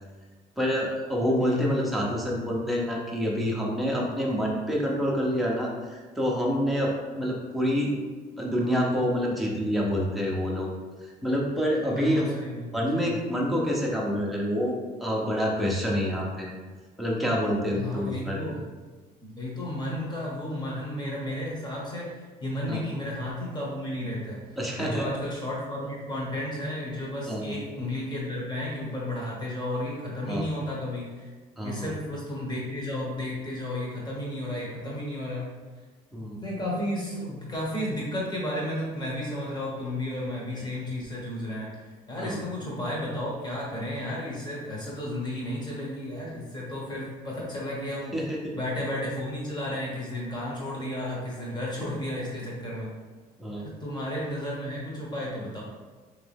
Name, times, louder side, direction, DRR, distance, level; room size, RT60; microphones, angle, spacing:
voice 1, 0.6-8.0 8.4-10.7 11.0-12.3 12.7-16.5 17.0-18.4 22.7-22.8 24.6-25.1 27.3-27.6 30.3-30.4 31.6-31.9 36.1-36.4 42.2-42.4 48.1-48.6 51.8-51.9 53.4-53.7, equal, ahead, -4 dB, 0.8 m, -27 dB
voice 2, 1.4-1.8 11.8-13.0 17.7-18.6 19.2-31.3 31.6-35.5 36.4-48.3 48.5-52.9 53.5-55.6, left 1 dB, 25° left, -4 dB, 1.3 m, -33 dB
3.4 x 3.1 x 3.4 m, 1.4 s
cardioid pair, 110°, 17 cm